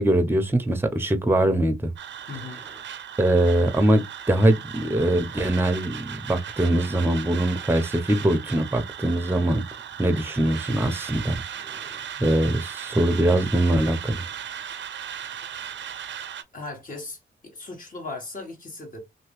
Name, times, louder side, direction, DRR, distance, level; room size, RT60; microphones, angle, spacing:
voice 1, 0.0-1.9 3.2-9.6 10.0-11.3 11.7-14.2, right 1 dB, 10° right, 0.7 m, -22 dB
sound 1, 2.0-16.4, right 9 dB, 65° right, 0.6 m, -37 dB
voice 2, 2.3-2.6 16.5-19.0, left 3 dB, 40° left, 1.5 m, -37 dB
2.9 x 2.7 x 3.1 m
cardioid pair, 65°, 21 cm